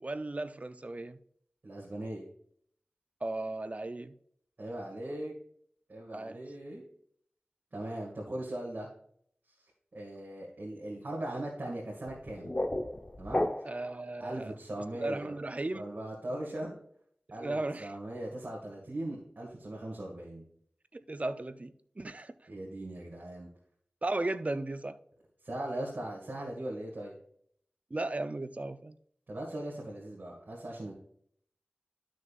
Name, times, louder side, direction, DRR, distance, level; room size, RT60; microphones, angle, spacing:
voice 1, 0.0-1.2 3.2-4.1 6.1-6.4 13.6-14.5 14.9-15.9 17.3-18.0 20.9-22.3 24.0-25.0 27.9-29.0, right 2 dB, 40° right, 0.6 m, -36 dB
voice 2, 1.6-2.2 4.6-5.3 5.9-6.8 7.7-8.9 9.9-12.6 13.2-13.5 14.2-15.3 15.7-16.8 17.3-20.4 22.5-23.5 25.4-27.2 29.3-30.9, right 1 dB, 60° right, 2.1 m, -39 dB
sound 1, 12.1-14.0, left 1 dB, 35° left, 0.8 m, -33 dB
12.0 x 6.3 x 2.5 m
cardioid pair, 40°, 4 cm